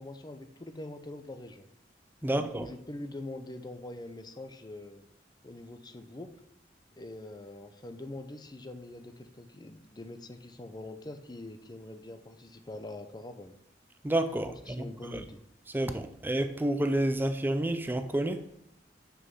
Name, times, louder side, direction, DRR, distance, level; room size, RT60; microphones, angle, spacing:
voice 1, 0.0-1.7 2.2-5.1 5.4-6.4 7.0-13.6 14.5-15.4, left 2 dB, 25° left, 0.7 m, -44 dB
voice 2, 2.2-2.7 14.0-15.2 15.7-18.5, right 1 dB, 10° right, 0.5 m, -30 dB
6.2 x 6.2 x 5.4 m
head